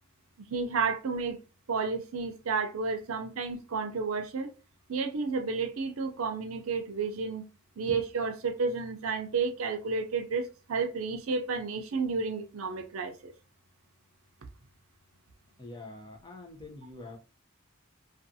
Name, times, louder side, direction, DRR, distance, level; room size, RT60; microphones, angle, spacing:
voice 1, 0.4-1.4 1.7-4.5 4.9-7.5 7.8-13.3, right 4 dB, 75° right, 0.5 m, -31 dB
voice 2, 15.6-17.2, left 2 dB, 20° left, 0.5 m, -45 dB
2.4 x 2.3 x 2.6 m
head